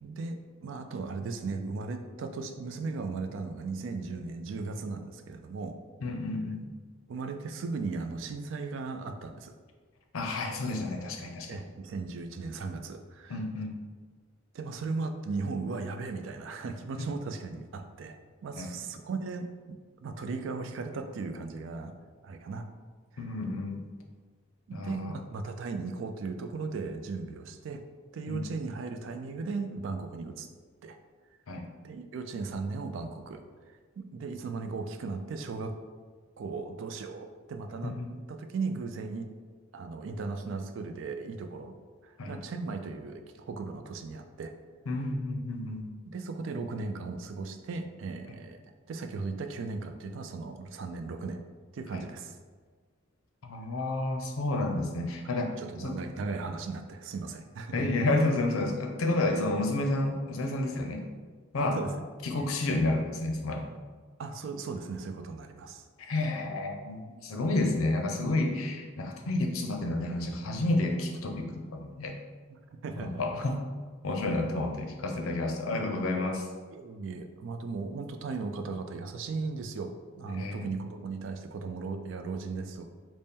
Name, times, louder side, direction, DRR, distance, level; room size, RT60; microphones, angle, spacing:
voice 1, 0.0-5.8 7.1-9.5 11.5-13.4 14.5-18.2 18.4-19.8 20.0-21.9 22.2-22.7 23.1-23.3 24.7-27.8 28.1-30.5 30.8-31.0 31.8-33.4 34.0-35.8 36.4-37.9 38.3-39.3 39.7-41.8 42.0-44.5 46.1-48.6 48.9-51.4 51.7-52.3 55.2-57.9 61.7-61.9 64.2-65.8 72.5-73.2 76.7-82.9, right 4 dB, 65° right, 7 dB, 0.3 m, -37 dB
voice 2, 6.0-6.7 10.1-11.6 13.3-13.8 18.6-18.7 23.2-23.9 24.7-25.2 28.3-28.5 31.5-31.7 37.8-38.1 42.2-42.4 44.9-45.9 48.3-48.4 51.9-52.0 53.4-56.0 57.7-61.1 61.5-61.8 62.2-63.7 66.0-72.1 73.0-73.6 74.0-76.5 80.3-80.7, left 2 dB, 85° left, 3 dB, 0.5 m, -30 dB
4.0 x 2.1 x 3.6 m, 1.5 s
head